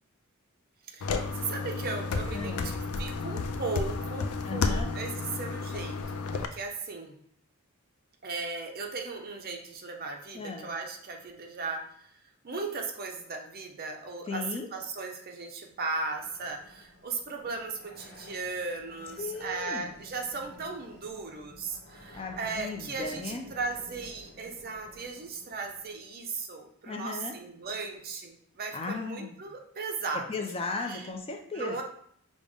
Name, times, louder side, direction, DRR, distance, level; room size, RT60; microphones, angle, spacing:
voice 1, 0.9-6.0 6.3-7.2 8.2-11.9 12.4-30.3 30.9-31.1 31.5-31.8, right 4 dB, 45° right, 3 dB, 0.6 m, -37 dB
sound 1, 1.0-6.5, left 4 dB, 90° left, 0.4 m, -32 dB
voice 2, 2.3-2.7 4.4-4.9 10.3-10.7 14.3-14.7 19.2-19.9 22.1-23.4 26.9-27.4 28.7-29.3 30.1-31.8, left 4 dB, 25° left, 4 dB, 0.4 m, -36 dB
sound 2, 16.1-25.9, equal, 50° left, 0.9 m, -52 dB
5.0 x 2.1 x 3.4 m, 0.67 s
head